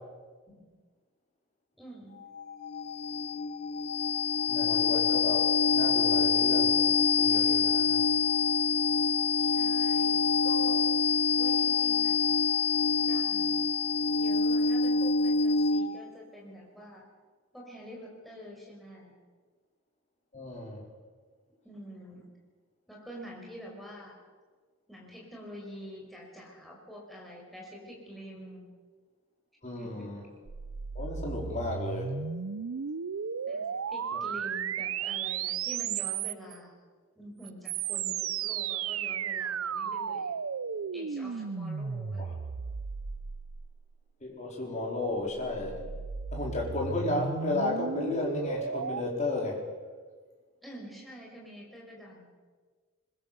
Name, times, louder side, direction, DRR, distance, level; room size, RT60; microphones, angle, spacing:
voice 1, 1.8-2.2 9.3-11.1 11.4-12.5 13.0-13.7 14.1-17.1 17.5-19.1 21.6-22.3 22.9-24.2 24.9-28.6 29.8-30.2 33.5-36.7 37.2-40.3 40.9-42.2 50.6-52.3, equal, ahead, -3 dB, 5.3 m, -47 dB
sound 1, 2.2-16.1, left 5 dB, 50° left, 1.1 m, -26 dB
voice 2, 4.5-6.9 7.2-8.0 20.3-20.8 29.6-30.2 30.9-32.2 42.1-42.3 44.2-45.8 46.3-49.6, left 2 dB, 35° left, -1 dB, 4.5 m, -33 dB
sound 2, 30.5-36.6 37.4-44.0 45.1-49.0, right 7 dB, 75° right, 0.6 m, -35 dB
21.5 x 20.5 x 7.0 m, 1.5 s
head